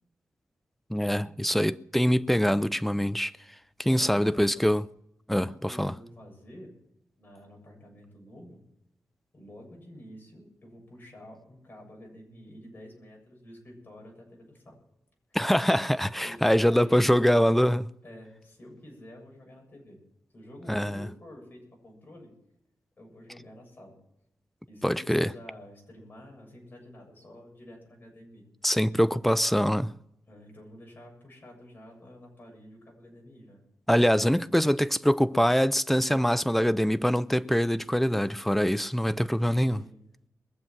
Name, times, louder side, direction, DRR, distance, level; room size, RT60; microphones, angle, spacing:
voice 1, 0.9-3.3 3.8-4.9 5.3-5.9 15.3-17.9 20.7-21.1 24.8-25.3 28.6-29.9 33.9-39.9, equal, 5° left, 0.5 m, -24 dB
voice 2, 3.8-4.7 5.4-6.8 7.2-8.7 9.3-14.8 16.2-17.1 18.0-20.0 20.3-22.3 23.0-24.0 24.7-28.5 30.3-33.6 39.8-40.0, equal, 35° left, 7.5 m, -49 dB
22.0 x 7.6 x 7.3 m
wide cardioid pair, 110°, 6 cm